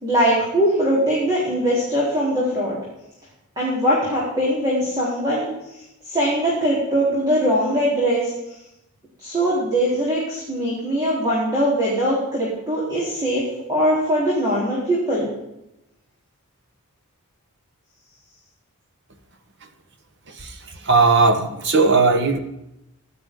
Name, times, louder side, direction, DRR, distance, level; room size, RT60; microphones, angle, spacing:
voice 1, 0.0-2.8 3.6-5.5 6.1-8.3 9.2-15.3, equal, 20° right, -7 dB, 3.7 m, -21 dB
voice 2, 20.8-22.4, right 3 dB, 50° right, 6 dB, 1.3 m, -17 dB
15.5 x 11.0 x 3.8 m, 0.88 s
head